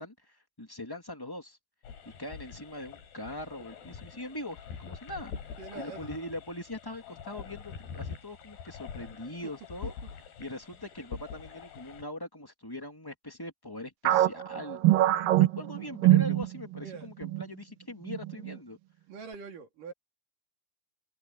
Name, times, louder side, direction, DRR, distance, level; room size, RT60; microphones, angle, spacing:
voice 1, 0.0-1.6 2.2-5.3 5.7-9.9 10.4-18.8, left 1 dB, 30° left, 0.4 m, -41 dB
sound 1, 1.8-12.0, left 7 dB, 80° left, 5.7 m, -45 dB
voice 2, 5.6-6.1 9.8-9.9 16.8-17.1 19.1-19.9, right 5 dB, 60° right, 4.4 m, -43 dB
sound 2, 14.0-16.9 17.2-17.4 18.1-18.5, right 15 dB, 75° right, 2.5 m, -24 dB
open air
omnidirectional pair, 4.5 m